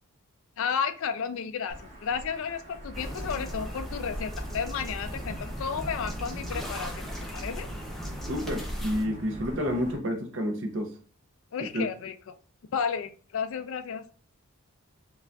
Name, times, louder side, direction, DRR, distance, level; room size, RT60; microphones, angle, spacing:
voice 1, 0.6-7.1 7.3-7.7 11.5-12.4 12.7-14.0, left 6 dB, 65° left, 11 dB, 0.3 m, -32 dB
Wind / Thunder / Rain, 1.7-10.0, right 1 dB, 30° right, 1.1 m, -42 dB
sound 1, 2.9-9.0, equal, ahead, 0.5 m, -37 dB
voice 2, 8.3-10.9 11.7-11.9, equal, 55° right, 4 dB, 0.6 m, -29 dB
4.8 x 2.4 x 2.3 m, 0.41 s
head